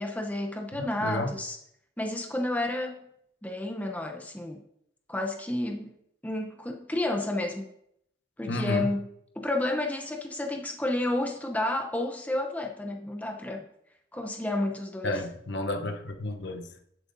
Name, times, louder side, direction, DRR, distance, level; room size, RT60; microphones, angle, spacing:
voice 1, 0.0-1.6 2.0-3.1 3.4-4.6 5.1-6.0 6.2-7.7 8.4-9.1 9.4-13.6 14.1-15.2, left 1 dB, 10° left, 0.7 m, -31 dB
voice 2, 0.8-1.3 8.5-8.9 15.0-16.7, left 1 dB, 60° left, 0.9 m, -31 dB
11.0 x 8.4 x 2.7 m
head